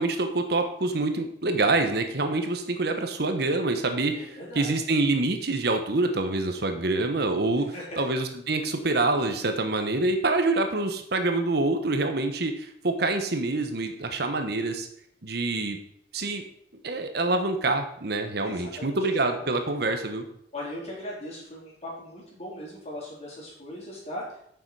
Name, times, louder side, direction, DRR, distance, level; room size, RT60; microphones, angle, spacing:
voice 1, 0.0-4.2 4.5-14.9 15.2-15.8 16.1-16.4 16.8-20.2, right 2 dB, 60° right, 6 dB, 1.1 m, -26 dB
voice 2, 4.1-4.8 7.7-8.0 18.4-19.2 20.5-24.4, left 1 dB, 35° left, -5 dB, 4.2 m, -39 dB
9.5 x 6.9 x 4.8 m, 0.70 s
head